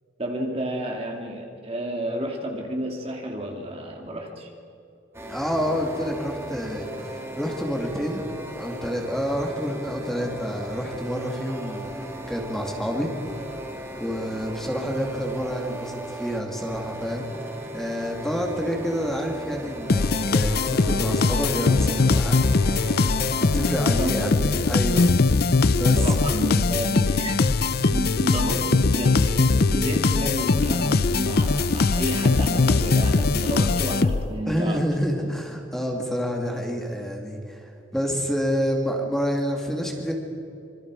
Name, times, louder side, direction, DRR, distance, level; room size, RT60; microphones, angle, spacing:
voice 1, 0.2-4.5 24.0-24.6 25.9-34.8 35.2-35.3, equal, 30° right, 1 dB, 2.3 m, -31 dB
sound 1, 5.1-24.1, right 1 dB, 15° right, 2.4 m, -37 dB
voice 2, 5.3-7.1 7.4-8.3 8.6-13.1 14.0-17.5 17.7-23.1 23.4-25.1 25.8-26.2 34.5-40.1, equal, ahead, 0 dB, 2.5 m, -28 dB
sound 2, 19.9-34.5, left 3 dB, 50° left, 0.6 m, -21 dB
26.0 x 25.0 x 4.9 m, 2.6 s
head